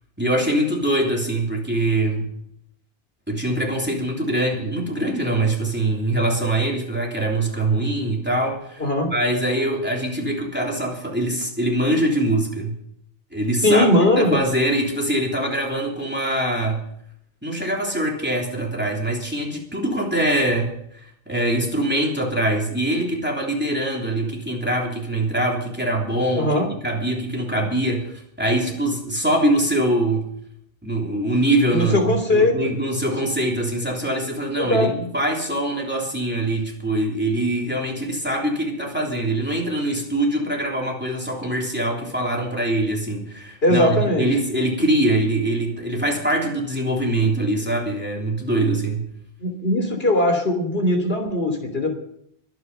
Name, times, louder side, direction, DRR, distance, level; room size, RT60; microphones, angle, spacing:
voice 1, 0.2-2.3 3.3-8.8 9.1-12.7 13.3-13.9 14.2-16.8 17.4-30.3 30.8-49.1, right 1 dB, 10° right, -1 dB, 3.3 m, -23 dB
voice 2, 8.8-9.1 13.6-14.4 26.4-26.7 31.7-32.7 33.0-33.1 34.6-34.9 43.6-44.3 49.4-51.9, left 1 dB, 65° left, 4 dB, 3.3 m, -19 dB
22.5 x 9.3 x 5.6 m, 0.70 s
omnidirectional pair, 1.1 m